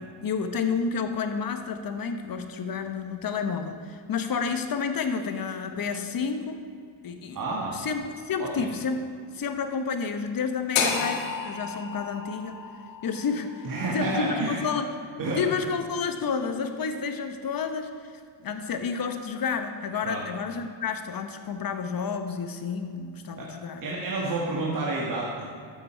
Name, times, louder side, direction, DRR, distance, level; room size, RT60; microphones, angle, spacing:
voice 1, 0.0-6.6 7.0-7.4 7.7-9.0 9.3-12.6 13.0-13.7 13.9-14.9 15.4-17.9 18.4-23.8, left 5 dB, 45° left, 7 dB, 1.1 m, -30 dB
voice 2, 7.3-7.8 8.4-8.7 13.6-14.7 15.2-15.4 20.0-20.2 23.4-23.5 23.8-25.5, right 2 dB, 45° right, -4 dB, 1.9 m, -29 dB
sound 1, 10.7-14.9, left 5 dB, 85° left, 1.5 m, -31 dB
12.0 x 8.1 x 4.6 m, 2.3 s
cardioid pair, 85°, 49 cm